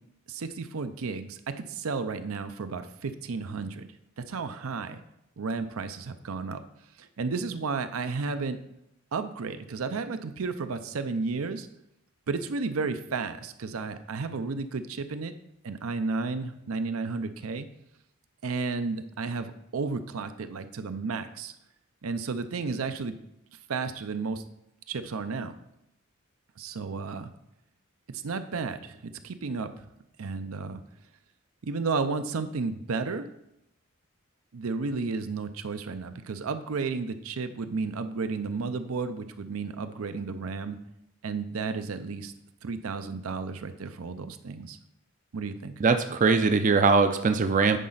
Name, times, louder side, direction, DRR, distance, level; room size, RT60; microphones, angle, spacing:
voice 1, 0.3-3.9 4.2-5.0 5.4-6.6 7.0-8.6 9.1-11.7 12.3-15.3 15.6-17.7 18.4-21.5 22.0-23.2 23.7-24.4 24.9-25.6 26.6-27.3 28.1-29.0 29.2-29.7 30.2-30.8 31.6-33.3 34.5-40.8 41.2-42.3 42.6-44.8 45.3-45.7, right 4 dB, 80° right, 10 dB, 0.6 m, -32 dB
voice 2, 45.8-47.8, right 4 dB, 35° right, 8 dB, 0.4 m, -21 dB
10.0 x 4.2 x 3.9 m, 0.82 s
head